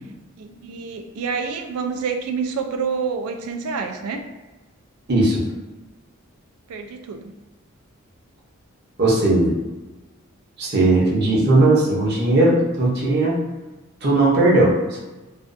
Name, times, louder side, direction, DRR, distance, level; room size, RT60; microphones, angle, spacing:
voice 1, 0.4-4.2 6.7-7.3, right 5 dB, 90° right, 5 dB, 0.3 m, -28 dB
voice 2, 5.1-5.4 9.0-9.5 10.6-13.4 14.0-15.0, right 2 dB, 50° right, -5 dB, 0.7 m, -17 dB
2.5 x 2.3 x 2.4 m, 1.1 s
head